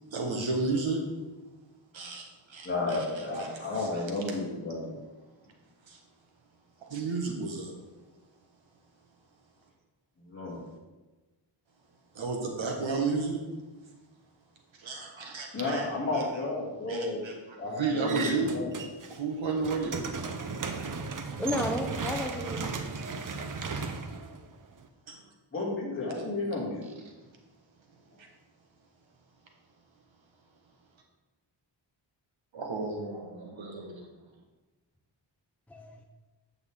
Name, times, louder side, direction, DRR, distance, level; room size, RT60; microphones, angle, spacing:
voice 1, 0.1-1.1 1.9-3.0 3.4-3.5 3.8-3.9 5.8-6.0 6.8-7.7 12.1-13.4 13.8-13.9 14.7-15.9 16.1-16.2 16.9-18.5 19.1-20.0 20.8-21.0 23.6-23.9 25.1-25.3 27.2-27.4 27.9-28.3 32.5-34.1, right 4 dB, 75° right, 1 dB, 1.6 m, -33 dB
voice 2, 2.6-5.0 10.2-10.7 15.5-17.3 17.6-18.7 25.5-26.9 28.1-28.2, left 2 dB, 25° left, -6 dB, 2.6 m, -32 dB
sound 1, 18.0-19.2 19.5-24.9, right 4 dB, 40° right, 0.7 m, -35 dB
voice 3, 21.4-22.8 35.7-36.0, left 1 dB, 5° left, 3 dB, 0.6 m, -33 dB
8.4 x 6.9 x 3.7 m, 1.2 s
wide cardioid pair, 120°, 47 cm